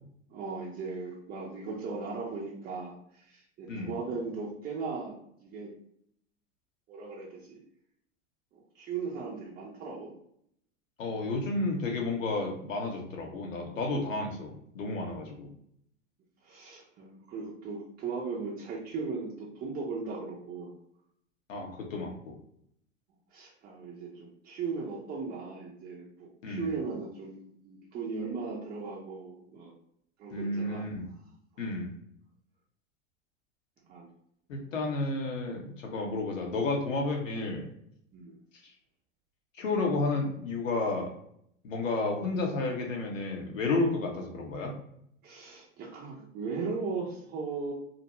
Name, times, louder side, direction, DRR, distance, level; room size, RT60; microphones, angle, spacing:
voice 1, 0.3-5.1 5.4-5.7 6.9-7.6 8.5-10.1 16.4-20.7 23.3-29.7 30.2-30.9 31.6-31.8 33.9-34.1 38.1-38.3 45.2-47.7, right 4 dB, 25° right, -4 dB, 0.6 m, -37 dB
voice 2, 11.0-15.5 21.5-22.3 26.4-26.7 30.3-31.1 31.6-31.9 34.5-37.7 39.6-41.1 41.6-44.7, left 2 dB, 80° left, 0 dB, 0.8 m, -31 dB
2.6 x 2.1 x 2.9 m, 0.71 s
hypercardioid pair, 90°, 38 cm